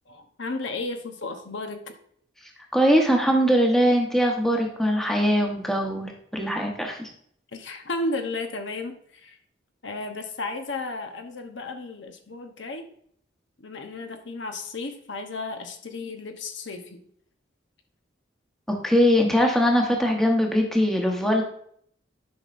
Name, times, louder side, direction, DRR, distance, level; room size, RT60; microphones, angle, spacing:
voice 1, 0.1-1.9 7.5-9.4 9.8-12.9 13.6-17.0, left 2 dB, 70° left, 5 dB, 0.9 m, -34 dB
voice 2, 2.7-7.1 18.7-21.4, equal, ahead, 1 dB, 0.9 m, -21 dB
10.5 x 5.5 x 2.5 m, 0.64 s
head